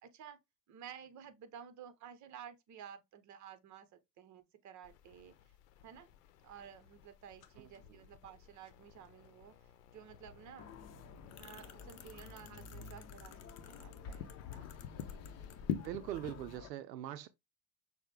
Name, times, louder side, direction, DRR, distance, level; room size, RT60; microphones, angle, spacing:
voice 1, 0.0-0.4 0.7-5.4 5.8-6.1 6.4-10.8 11.4-14.7 15.0-15.3, right 8 dB, 35° right, 0.9 m, -53 dB
sound 1, 4.8-16.4, left 9 dB, 75° left, 0.8 m, -48 dB
sound 2, 10.6-16.7, left 5 dB, 30° left, 0.8 m, -52 dB
voice 2, 15.8-17.3, right 12 dB, 80° right, 0.6 m, -42 dB
6.3 x 2.2 x 3.3 m
hypercardioid pair, 80°, 49 cm